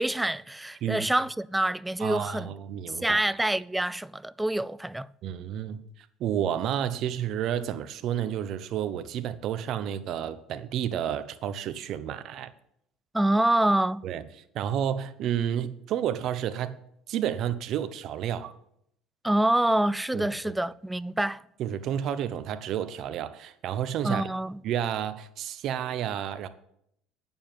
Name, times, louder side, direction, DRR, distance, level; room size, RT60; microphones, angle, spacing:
voice 1, 0.0-2.5 3.0-5.1 13.1-14.0 19.2-21.4 24.0-24.6, right 1 dB, 5° right, 0.3 m, -26 dB
voice 2, 2.0-3.2 5.2-12.5 14.0-14.2 14.5-16.8 17.1-18.5 20.1-20.5 21.6-24.2 24.6-26.5, right 10 dB, 60° right, 0.8 m, -31 dB
9.2 x 7.1 x 7.6 m
cardioid pair, 110°, 0 cm